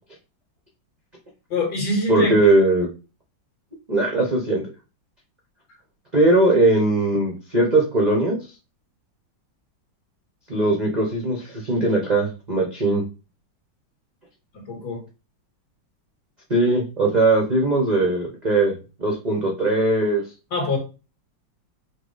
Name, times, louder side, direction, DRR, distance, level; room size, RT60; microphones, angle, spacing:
voice 1, 1.5-2.3 14.5-15.0 20.5-20.8, left 2 dB, 60° left, 0 dB, 2.1 m, -24 dB
voice 2, 2.1-2.9 3.9-4.6 6.1-8.4 10.5-13.0 16.5-18.7 19.0-20.2, right 2 dB, 45° right, -1 dB, 0.5 m, -20 dB
5.5 x 2.2 x 3.9 m, 0.32 s
omnidirectional pair, 2.1 m